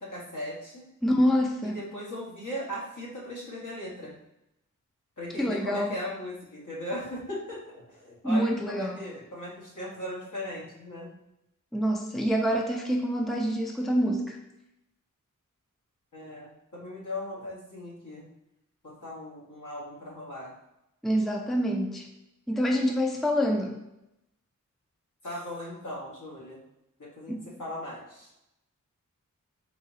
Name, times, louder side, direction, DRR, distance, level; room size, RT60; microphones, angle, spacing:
voice 1, 0.0-0.8 1.6-4.1 5.2-11.1 16.1-18.2 18.8-20.5 25.2-26.6 27.0-28.3, left 1 dB, 70° left, -5 dB, 1.5 m, -38 dB
voice 2, 1.0-1.8 5.4-5.9 8.2-9.0 11.7-14.4 21.0-22.1 22.5-23.8 27.3-27.4, equal, ahead, 1 dB, 0.5 m, -26 dB
4.0 x 3.8 x 2.7 m, 0.88 s
wide cardioid pair, 75°, 32 cm